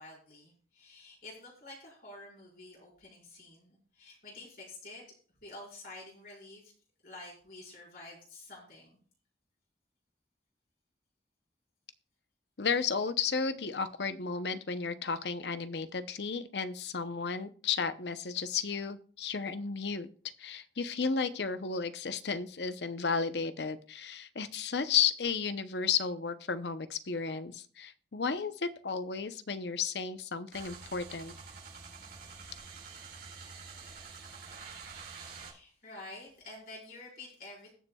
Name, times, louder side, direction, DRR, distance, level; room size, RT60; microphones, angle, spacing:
voice 1, 0.0-5.0 5.4-6.7 7.0-9.0 35.3-37.7, left 2 dB, 55° left, -5 dB, 4.7 m, -49 dB
voice 2, 12.6-20.1 20.4-31.3, left 5 dB, 75° left, 11 dB, 0.8 m, -33 dB
sound 1, 30.5-35.5, right 5 dB, 60° right, 4.5 m, -47 dB
20.5 x 6.9 x 2.3 m, 0.43 s
head